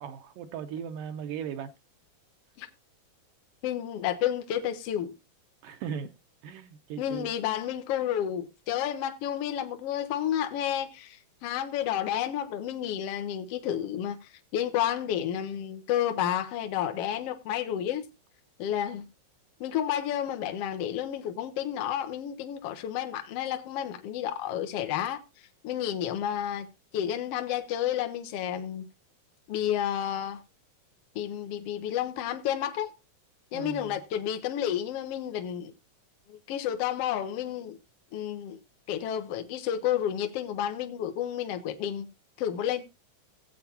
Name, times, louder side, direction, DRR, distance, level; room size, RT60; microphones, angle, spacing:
voice 1, 0.0-1.7 5.6-6.1 6.4-7.3 33.5-34.0, right 8 dB, 75° right, 2.2 m, -37 dB
voice 2, 3.6-5.2 7.0-14.2 14.5-18.1 18.6-19.0 19.6-25.2 25.6-26.7 26.9-28.9 29.5-30.4 31.1-32.9 33.5-35.7 36.3-37.8 38.1-38.6 38.9-42.1 42.4-42.8, left 10 dB, 75° left, 1.4 m, -31 dB
17.0 x 8.1 x 2.9 m
omnidirectional pair, 4.2 m